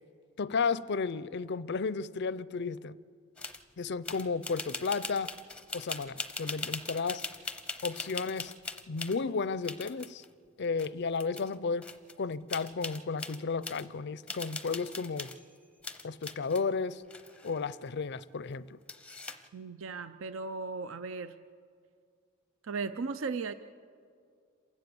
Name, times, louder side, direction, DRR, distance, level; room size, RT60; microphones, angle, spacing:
voice 1, 0.4-2.9 3.8-5.3 5.7-7.2 7.8-8.5 8.9-10.2 10.6-11.9 12.2-15.3 16.0-17.0 17.4-18.8, left 4 dB, 50° left, 0.5 m, -33 dB
sound 1, 3.4-3.6 4.1-9.2 9.6-10.3 10.8-10.9 11.2-11.6 11.8-12.1 12.5-13.8 14.3-15.5 15.8-16.6 17.1-17.9 18.9-19.5, left 3 dB, 5° left, 0.7 m, -41 dB
voice 2, 19.5-21.4 22.6-23.5, right 4 dB, 60° right, 0.5 m, -36 dB
27.5 x 16.0 x 7.0 m
head